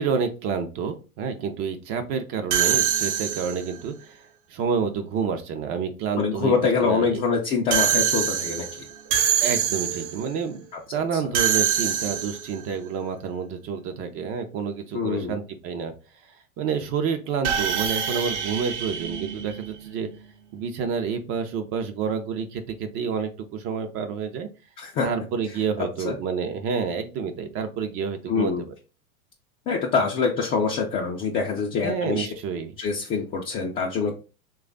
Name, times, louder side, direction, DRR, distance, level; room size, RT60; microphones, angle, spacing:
voice 1, 0.0-4.2 4.5-6.5 6.8-7.2 9.4-10.7 10.9-15.9 16.6-20.1 20.5-24.5 25.0-28.7 31.8-32.7, right 6 dB, 30° right, 7 dB, 0.5 m, -29 dB
sound 1, 2.5-3.8 7.7-10.2 11.3-12.6 17.4-20.0, right 9 dB, 55° right, 0.8 m, -25 dB
voice 2, 6.2-8.8 11.2-11.3 14.9-15.4 24.8-25.1 26.0-26.1 28.3-28.6 29.7-32.3 32.8-34.1, left 5 dB, 20° left, -2 dB, 0.4 m, -25 dB
3.1 x 2.3 x 3.7 m, 0.32 s
hypercardioid pair, 110°, 43 cm